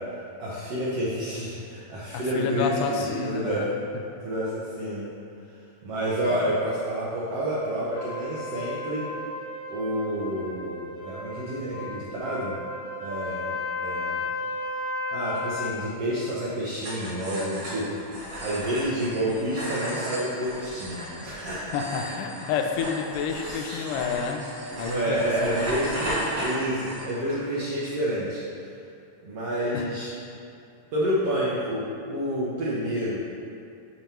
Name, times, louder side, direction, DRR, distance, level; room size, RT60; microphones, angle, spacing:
voice 1, 0.4-3.7 4.2-5.1 5.8-9.0 9.7-12.5 13.0-14.2 15.1-21.7 23.3-23.9 24.7-28.4 29.2-30.1 30.9-33.2, right 1 dB, 75° right, -8 dB, 1.4 m, -29 dB
voice 2, 2.1-3.7 21.7-24.5 24.8-25.6 29.7-29.9, left 6 dB, 85° left, 4 dB, 2.1 m, -29 dB
Trumpet, 7.9-15.8, left 2 dB, 60° left, 1.9 m, -34 dB
sound 1, 16.8-27.4, equal, 45° right, 1.7 m, -35 dB
7.1 x 3.0 x 5.5 m, 2.7 s
omnidirectional pair, 3.7 m